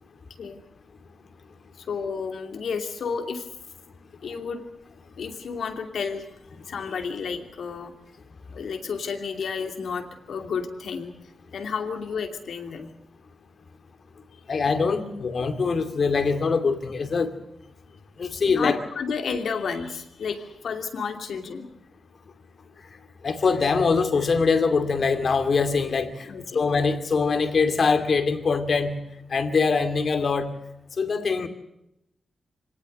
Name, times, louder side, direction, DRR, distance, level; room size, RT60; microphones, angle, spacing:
voice 1, 1.8-3.5 4.2-4.6 5.2-6.3 6.7-7.9 8.5-11.1 11.5-12.9 14.3-14.4 18.5-21.7 26.3-26.6, left 5 dB, 80° left, 6 dB, 2.7 m, -31 dB
voice 2, 14.5-17.3 18.2-18.8 23.2-29.0 29.3-30.5 31.0-31.5, left 4 dB, 55° left, 9 dB, 2.4 m, -23 dB
25.0 x 18.5 x 6.7 m, 0.83 s
cardioid pair, 90°, 0 cm